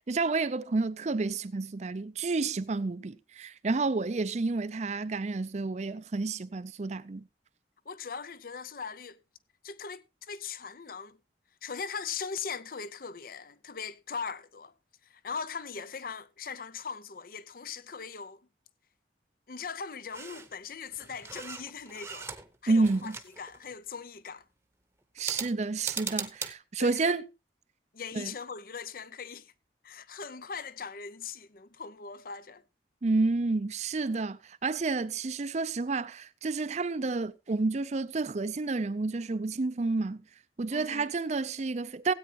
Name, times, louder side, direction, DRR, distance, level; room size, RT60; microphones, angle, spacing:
voice 1, 0.1-7.2 22.7-23.2 25.2-27.3 28.2-28.3 33.0-40.2 40.6-42.1, right 3 dB, 40° right, 0.5 m, -30 dB
voice 2, 7.9-9.2 9.6-11.2 11.6-14.7 15.1-18.4 19.5-22.3 22.6-23.1 23.4-24.4 26.8-27.2 27.9-29.5 29.8-32.6 40.7-41.1, left 6 dB, 50° left, 0.6 m, -40 dB
sound 1, 20.1-20.5 20.9-22.6 22.8-23.7 25.2-26.5, right 4 dB, 15° right, 0.9 m, -39 dB
16.5 x 8.8 x 2.9 m
head